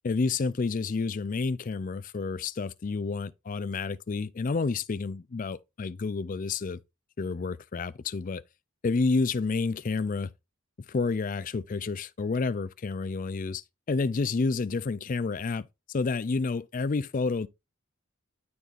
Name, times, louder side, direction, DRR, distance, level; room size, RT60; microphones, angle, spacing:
voice 1, 0.0-6.8 7.2-8.4 8.8-10.3 10.9-13.6 13.9-17.5, left 4 dB, 40° left, 0.4 m, -29 dB
12.0 x 4.1 x 2.5 m
head